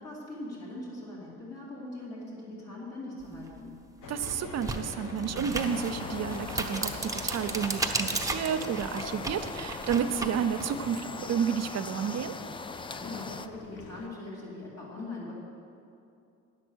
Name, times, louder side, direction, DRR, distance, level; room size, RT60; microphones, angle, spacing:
voice 1, 0.0-3.7 12.9-15.3, left 2 dB, 55° left, -7 dB, 2.7 m, -41 dB
sound 1, 3.5-3.6 4.1-10.7, right 3 dB, 10° right, 0.8 m, -35 dB
sound 2, 4.0-14.1, left 4 dB, 85° left, 1.0 m, -44 dB
voice 2, 4.1-12.4, right 7 dB, 60° right, 10 dB, 0.6 m, -31 dB
sound 3, 5.5-13.5, left 4 dB, 20° left, 0.3 m, -41 dB
9.8 x 7.6 x 6.3 m, 2.6 s
cardioid pair, 90°, 30 cm